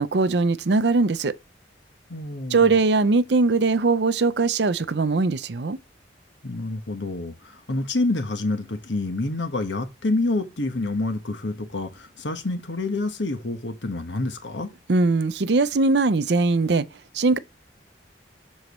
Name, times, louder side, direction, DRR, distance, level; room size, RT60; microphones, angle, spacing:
voice 1, 0.0-1.4 2.5-5.8 14.9-16.9 17.1-17.4, right 3 dB, 65° right, 0.6 m, -20 dB
voice 2, 2.1-2.6 6.4-14.7, left 2 dB, 75° left, 1.4 m, -27 dB
7.8 x 6.4 x 3.1 m
head